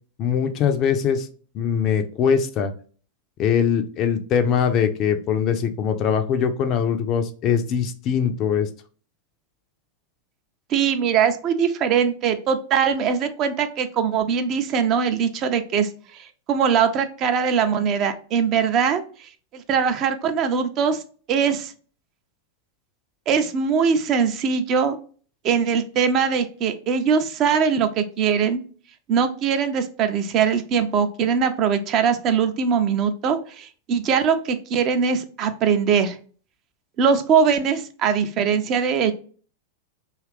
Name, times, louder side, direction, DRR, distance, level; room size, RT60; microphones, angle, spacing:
voice 1, 0.2-1.3 1.5-2.7 3.4-8.7, left 7 dB, 35° left, 7 dB, 0.4 m, -22 dB
voice 2, 10.7-19.0 19.5-21.0 21.3-21.7 23.3-25.0 25.4-28.6 29.1-36.2 37.0-39.1, right 6 dB, 35° right, 8 dB, 0.4 m, -21 dB
2.8 x 2.4 x 3.2 m, 0.41 s
figure-of-eight pair, 90°, 0 cm